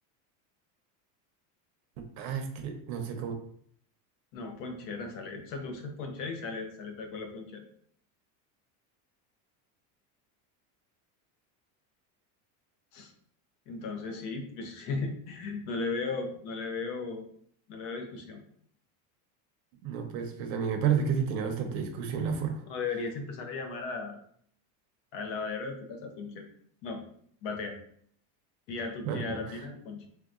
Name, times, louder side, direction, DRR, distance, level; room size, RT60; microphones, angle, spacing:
voice 1, 2.2-3.3 19.8-22.6 29.0-29.4, right 7 dB, 70° right, 6 dB, 0.7 m, -31 dB
voice 2, 4.3-7.6 12.9-13.1 13.7-17.3 17.7-18.4 22.7-24.2 25.1-26.4 26.8-27.0 27.4-27.7 28.7-30.1, left 4 dB, 60° left, 4 dB, 0.7 m, -36 dB
3.2 x 2.8 x 2.4 m, 0.63 s
cardioid pair, 160°, 43 cm